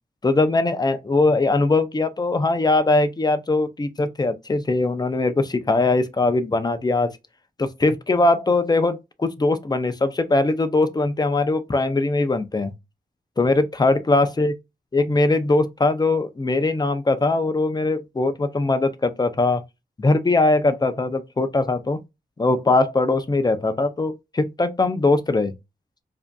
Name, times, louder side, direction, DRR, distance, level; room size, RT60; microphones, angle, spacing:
voice 1, 0.2-7.1 7.6-12.7 13.4-14.5 14.9-19.6 20.0-22.0 22.4-25.5, left 2 dB, 25° left, 0.6 m, -21 dB
4.8 x 2.7 x 2.3 m
wide cardioid pair, 100°, 16 cm